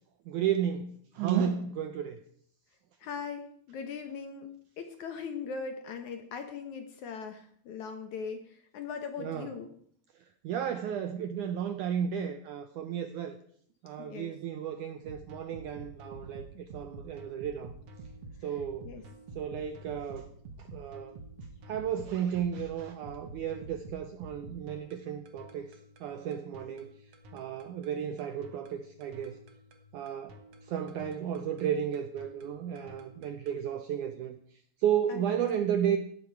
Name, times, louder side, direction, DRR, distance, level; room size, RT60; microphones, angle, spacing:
voice 1, 0.3-2.2 9.2-9.5 10.4-13.4 13.8-17.7 18.4-18.9 19.4-20.3 20.6-21.2 21.7-25.8 26.0-26.9 27.3-29.4 29.9-30.4 30.6-34.4 34.8-36.0, right 9 dB, 80° right, 9 dB, 1.8 m, -33 dB
voice 2, 3.0-4.5 4.8-9.7 14.0-14.3 18.8-19.0 35.1-35.3, left 6 dB, 65° left, 7 dB, 2.1 m, -40 dB
sound 1, 15.0-33.6, right 2 dB, 55° right, 1.9 m, -49 dB
15.5 x 12.5 x 4.7 m, 0.63 s
omnidirectional pair, 4.4 m